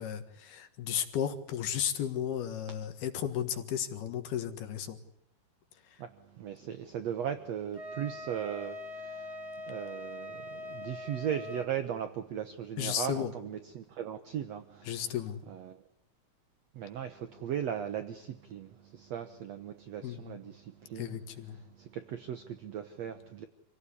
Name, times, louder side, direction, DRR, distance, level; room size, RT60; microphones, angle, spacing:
voice 1, 0.0-5.0 12.8-13.3 14.9-15.4 20.0-20.4 21.0-21.6, left 9 dB, 75° left, 3.5 m, -34 dB
voice 2, 6.4-15.8 16.7-21.2 21.4-23.5, right 9 dB, 70° right, 1.7 m, -38 dB
Wind instrument woodwind instrument, 7.7-11.7, left 1 dB, 10° right, 3.8 m, -42 dB
27.0 x 17.5 x 9.9 m
omnidirectional pair, 4.6 m